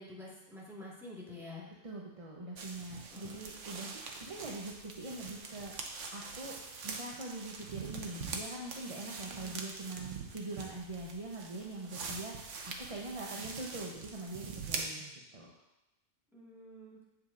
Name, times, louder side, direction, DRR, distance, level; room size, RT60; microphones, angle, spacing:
voice 1, 0.0-1.7 3.1-3.4 3.7-3.8 9.3-9.6 16.3-17.0, left 1 dB, ahead, -6 dB, 1.7 m, -48 dB
voice 2, 1.8-5.7 6.1-15.5, right 2 dB, 35° right, -2 dB, 0.7 m, -43 dB
sound 1, 2.6-14.8, right 4 dB, 80° right, 1.1 m, -44 dB
7.6 x 7.4 x 2.5 m, 0.93 s
omnidirectional pair, 1.2 m